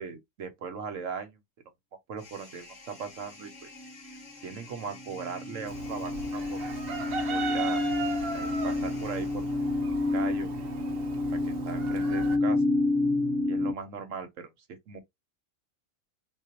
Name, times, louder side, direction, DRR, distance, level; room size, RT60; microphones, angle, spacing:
voice 1, 0.0-1.4 2.1-3.5 4.0-4.2 4.4-6.6 7.3-7.8 8.3-9.5 10.1-10.5 11.3-12.6 13.5-15.0, right 6 dB, 70° right, 1.3 m, -38 dB
sound 1, 2.2-9.9, left 4 dB, 35° left, 1.3 m, -51 dB
sound 2, 3.8-4.6 4.9-13.7, left 2 dB, ahead, 0.6 m, -29 dB
Chicken rooster, 5.7-12.4, right 4 dB, 50° right, 0.9 m, -37 dB
3.9 x 2.7 x 2.9 m
omnidirectional pair, 1.4 m